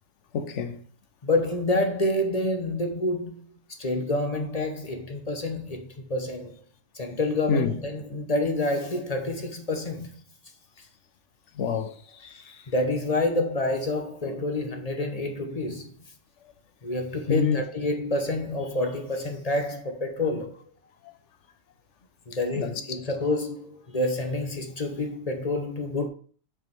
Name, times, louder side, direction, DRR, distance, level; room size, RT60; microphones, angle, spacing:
voice 1, 0.3-0.8 7.5-7.7 11.6-12.6 17.3-17.6 21.0-21.1 22.6-22.7, left 5 dB, 80° left, 1.1 m, -27 dB
voice 2, 1.2-3.4 3.8-6.5 6.9-10.1 12.7-15.9 16.8-20.6 22.3-26.1, left 2 dB, 35° left, 1.0 m, -28 dB
5.7 x 5.0 x 4.5 m
omnidirectional pair, 1.2 m